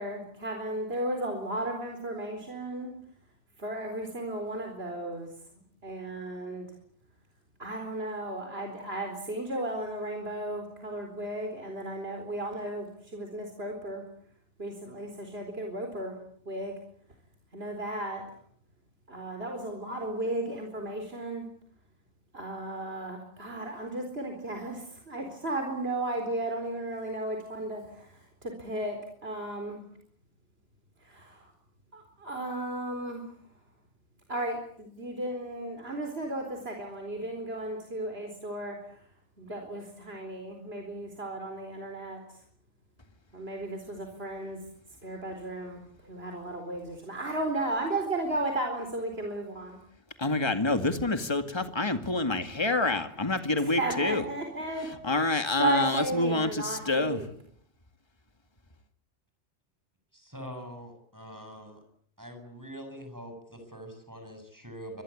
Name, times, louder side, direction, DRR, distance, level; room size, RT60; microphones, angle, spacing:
voice 1, 0.0-2.9 3.6-5.3 5.8-6.7 7.6-14.0 14.6-16.2 16.4-16.7 17.5-18.2 19.1-21.5 22.3-29.8 31.0-31.5 31.9-33.3 34.3-38.8 39.4-42.2 43.3-44.6 45.0-49.8 53.6-54.9 55.6-57.3, right 2 dB, 60° right, 4 dB, 4.6 m, -34 dB
voice 2, 50.2-54.2 55.0-57.2, left 2 dB, 25° left, 8 dB, 2.2 m, -27 dB
voice 3, 60.1-61.8 62.2-65.0, equal, 15° right, 6 dB, 7.8 m, -44 dB
26.5 x 21.5 x 8.7 m, 0.62 s
omnidirectional pair, 1.2 m